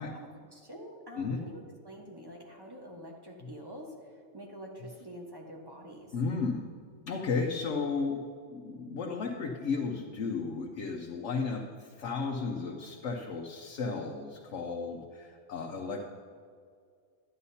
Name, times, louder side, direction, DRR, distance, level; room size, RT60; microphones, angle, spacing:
voice 1, 0.1-6.2, equal, 20° right, -1 dB, 1.2 m, -47 dB
voice 2, 6.1-6.6 7.1-16.0, left 4 dB, 90° left, 1 dB, 1.1 m, -34 dB
12.0 x 9.6 x 2.8 m, 2.1 s
omnidirectional pair, 1.2 m